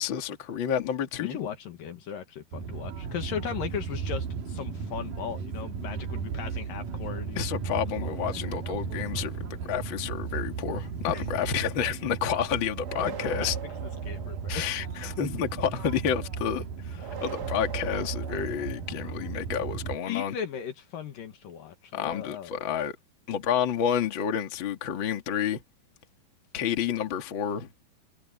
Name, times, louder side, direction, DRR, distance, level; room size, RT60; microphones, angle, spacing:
voice 1, 0.0-1.4 7.4-13.6 14.5-20.3 21.9-23.0 23.3-25.6 26.5-27.7, left 8 dB, 40° left, 2.2 m, -30 dB
voice 2, 1.2-7.4 8.0-8.2 11.1-11.3 12.9-14.6 20.1-22.6, left 8 dB, 65° left, 3.1 m, -37 dB
sound 1, 2.5-20.0, right 6 dB, 60° right, 3.3 m, -35 dB
sound 2, 12.8-14.9 17.0-19.0, right 7 dB, 80° right, 0.9 m, -41 dB
omnidirectional pair, 4.5 m